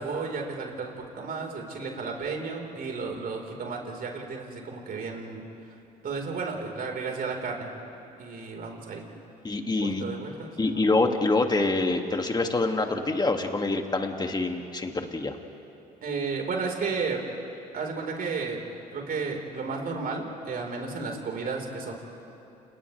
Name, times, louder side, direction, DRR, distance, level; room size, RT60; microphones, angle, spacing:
voice 1, 0.0-5.4 6.0-7.7 8.2-9.1 9.8-10.9 16.0-17.2 17.7-18.6 18.9-21.9, right 4 dB, 50° right, 1 dB, 4.6 m, -33 dB
voice 2, 9.4-10.0 10.6-15.4, left 3 dB, 20° left, 4 dB, 2.4 m, -26 dB
30.0 x 30.0 x 3.4 m, 2.9 s
hypercardioid pair, 55°, 20 cm